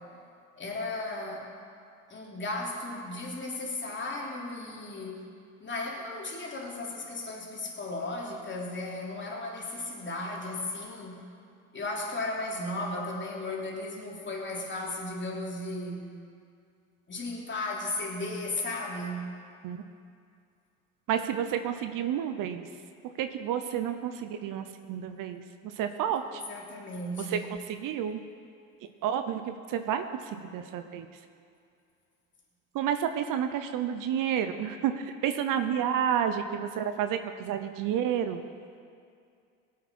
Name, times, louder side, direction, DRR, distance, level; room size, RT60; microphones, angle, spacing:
voice 1, 0.6-1.5 2.1-5.3 5.6-11.2 11.7-16.0 17.1-19.3 26.3-27.5, left 2 dB, 30° left, -2 dB, 3.1 m, -35 dB
voice 2, 21.1-22.7 23.2-26.4 27.3-27.4 27.7-28.2 29.0-30.1 30.3-31.1 32.7-38.4, right 9 dB, 55° right, 9 dB, 0.9 m, -30 dB
18.0 x 8.5 x 4.3 m, 2.4 s
hypercardioid pair, 70°, 38 cm